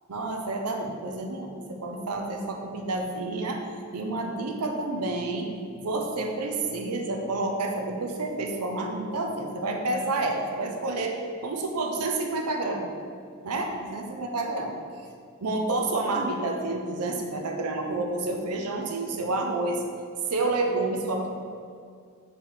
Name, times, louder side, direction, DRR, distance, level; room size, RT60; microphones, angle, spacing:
voice 1, 0.1-3.6 3.9-11.2 11.4-12.9 13.4-14.8 15.4-19.8 20.3-21.3, right 2 dB, 90° right, 2 dB, 0.7 m, -29 dB
7.0 x 3.3 x 4.5 m, 2.2 s
head